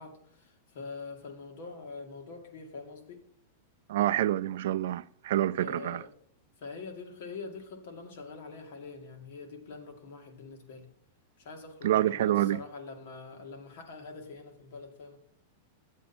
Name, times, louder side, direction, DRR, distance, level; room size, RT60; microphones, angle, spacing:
voice 1, 0.0-3.2 5.6-6.1 6.6-10.9 11.4-15.2, left 4 dB, 60° left, 2.1 m, -44 dB
voice 2, 3.9-6.0 11.8-12.6, right 13 dB, 65° right, 0.3 m, -27 dB
10.5 x 7.9 x 4.3 m
supercardioid pair, 170°, 0 cm